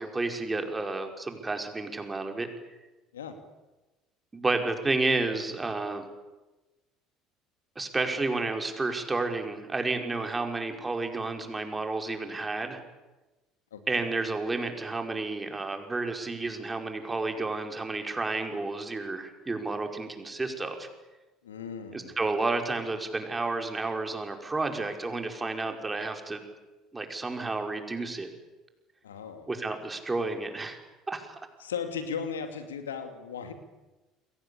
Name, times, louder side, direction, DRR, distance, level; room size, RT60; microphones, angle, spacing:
voice 1, 0.0-2.5 4.3-6.1 7.8-12.8 13.9-20.9 21.9-26.4 26.9-28.3 29.5-30.8 31.1-31.4, right 3 dB, 20° right, 4 dB, 5.2 m, -31 dB
voice 2, 21.4-22.1 29.0-29.5 31.6-33.5, left 6 dB, 80° left, 8 dB, 2.6 m, -36 dB
29.5 x 22.5 x 8.6 m, 1.1 s
figure-of-eight pair, 60°, 0 cm